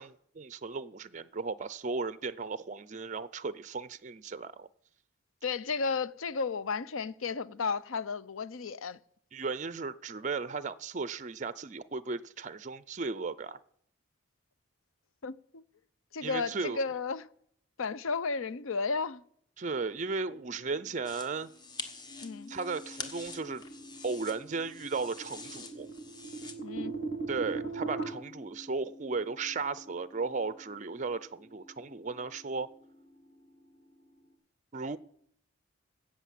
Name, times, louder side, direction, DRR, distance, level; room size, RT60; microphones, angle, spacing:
voice 1, 0.0-4.7 9.3-13.6 16.2-16.8 19.6-21.5 22.5-23.6 24.0-25.9 27.3-32.7 34.7-35.0, right 4 dB, 35° right, 0.4 m, -35 dB
voice 2, 5.4-9.0 15.2-15.6 16.1-17.3 17.8-19.2 22.2-22.5 26.6-27.0, left 4 dB, 90° left, 0.6 m, -33 dB
sound 1, 20.3-34.4, left 2 dB, 40° left, 5.2 m, -54 dB
sound 2, 21.0-26.5, left 3 dB, 20° left, 1.2 m, -46 dB
sound 3, 23.3-28.1, right 4 dB, 55° left, 2.2 m, -39 dB
16.5 x 6.3 x 7.5 m
head